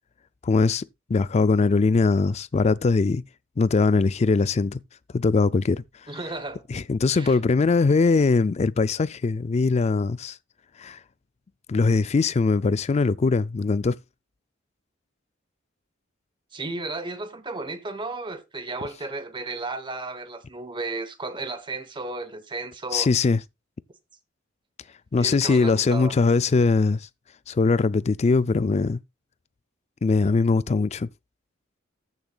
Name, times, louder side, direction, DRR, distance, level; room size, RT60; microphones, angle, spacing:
voice 1, 0.4-3.2 3.6-4.8 5.1-5.8 6.7-10.4 10.8-11.0 11.7-14.0 22.9-23.4 25.1-27.0 27.5-29.0 30.0-31.1, left 4 dB, 35° left, 0.4 m, -21 dB
voice 2, 6.1-6.6 7.1-7.4 16.5-23.1 25.2-26.2, right 3 dB, 25° right, 1.1 m, -34 dB
14.0 x 6.8 x 2.4 m
head